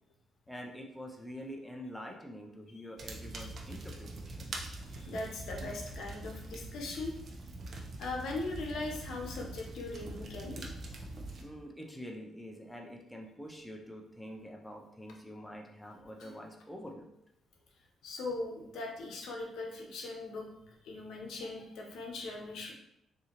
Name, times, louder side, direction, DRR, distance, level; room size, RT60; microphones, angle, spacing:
voice 1, 0.5-4.6 11.4-17.1, equal, 5° left, 0 dB, 0.5 m, -46 dB
sound 1, 3.0-11.4, right 2 dB, 50° right, 0.6 m, -43 dB
voice 2, 4.9-7.1 8.0-10.6 16.2-16.3 18.0-20.5 20.8-22.7, left 2 dB, 75° left, 0 dB, 0.8 m, -40 dB
3.7 x 2.8 x 2.9 m, 0.79 s
cardioid pair, 90°, 0 cm